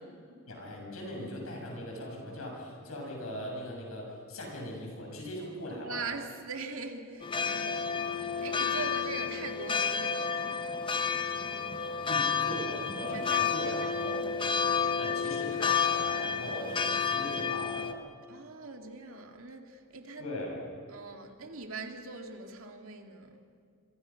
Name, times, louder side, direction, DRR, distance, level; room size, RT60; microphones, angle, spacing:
voice 1, 0.5-6.1 12.1-14.2 15.0-18.0 20.2-20.6, left 1 dB, 85° left, 0 dB, 7.2 m, -40 dB
voice 2, 5.7-10.8 13.1-14.2 18.3-20.3 20.9-23.4, right 4 dB, 75° right, 4 dB, 2.4 m, -42 dB
sound 1, 7.2-17.9, left 6 dB, 25° left, 1.0 m, -31 dB
26.5 x 25.0 x 5.9 m, 2.1 s
head